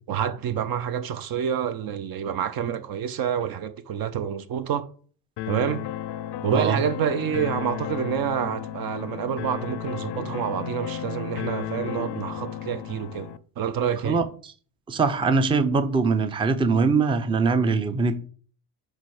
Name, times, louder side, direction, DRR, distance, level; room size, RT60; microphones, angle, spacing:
voice 1, 0.1-4.9 5.5-5.9 6.4-14.2, right 8 dB, 45° right, 0.6 m, -28 dB
sound 1, 5.4-13.4, left 12 dB, 55° left, 0.6 m, -34 dB
voice 2, 14.9-18.3, right 4 dB, 10° right, 0.5 m, -22 dB
7.4 x 2.6 x 4.8 m
supercardioid pair, 85°, 49 cm